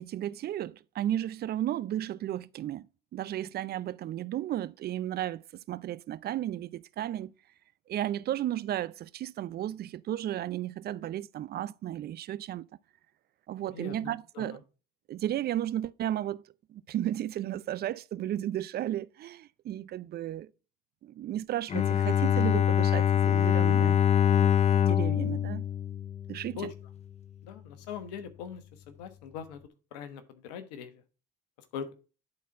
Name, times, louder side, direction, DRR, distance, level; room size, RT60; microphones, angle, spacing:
voice 1, 0.0-2.9 3.1-7.3 7.9-12.7 13.5-14.6 15.1-16.4 16.7-20.5 21.0-24.0 24.9-25.6 26.3-26.6, right 12 dB, 50° right, 0.5 m, -34 dB
voice 2, 13.7-14.6 26.6-26.7 27.4-29.6 29.9-31.0 31.6-31.9, left 7 dB, 85° left, 1.2 m, -41 dB
Bowed string instrument, 21.7-26.7, left 9 dB, 35° left, 0.5 m, -24 dB
10.5 x 4.3 x 4.7 m
hypercardioid pair, 60°, 20 cm